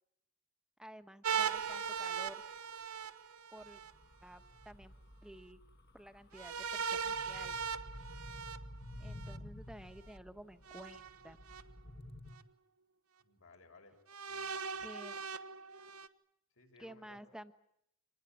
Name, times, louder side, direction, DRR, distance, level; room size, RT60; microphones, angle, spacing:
voice 1, 0.8-2.4 3.5-3.8 4.2-4.9 5.2-5.6 5.9-7.6 9.0-11.4 14.8-15.2 16.8-17.5, equal, 5° right, 9 dB, 1.3 m, -52 dB
sound 1, 1.2-3.9 6.3-9.4 10.7-11.6 12.4-12.5 14.1-16.1, right 6 dB, 85° right, 1.2 m, -39 dB
sound 2, 3.6-12.3, left 1 dB, 50° left, 2.2 m, -52 dB
voice 2, 13.2-13.9 14.3-14.9 16.5-17.3, left 3 dB, 65° left, 3 dB, 6.6 m, -61 dB
26.5 x 20.0 x 9.3 m, 0.73 s
head